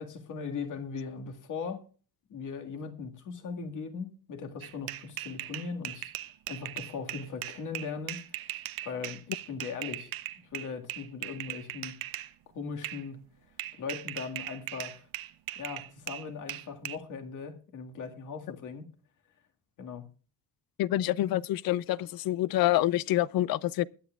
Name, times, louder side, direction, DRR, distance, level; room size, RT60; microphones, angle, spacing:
voice 1, 0.0-1.8 2.3-6.1 6.5-10.1 10.5-12.0 12.5-13.2 13.7-15.1 15.6-18.9 19.8-20.1, left 5 dB, 60° left, 1.9 m, -39 dB
sound 1, 4.6-12.3 12.8-13.0 13.6-17.0, right 14 dB, 80° right, 0.7 m, -39 dB
voice 2, 20.8-23.8, left 14 dB, 80° left, 0.5 m, -27 dB
21.0 x 9.2 x 2.4 m
cardioid pair, 155°, 35 cm